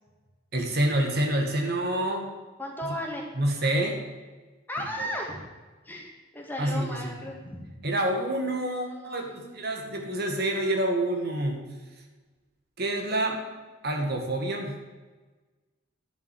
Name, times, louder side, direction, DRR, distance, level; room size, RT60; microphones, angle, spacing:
voice 1, 0.5-2.3 3.4-4.0 4.8-5.1 6.6-7.1 7.8-11.7 12.8-13.4 13.8-14.8, right 1 dB, 55° right, 3 dB, 1.8 m, -27 dB
voice 2, 2.6-3.2 4.7-5.4 5.8-7.8 8.7-9.7, equal, 10° left, -1 dB, 2.2 m, -36 dB
11.0 x 7.4 x 7.7 m, 1.3 s
head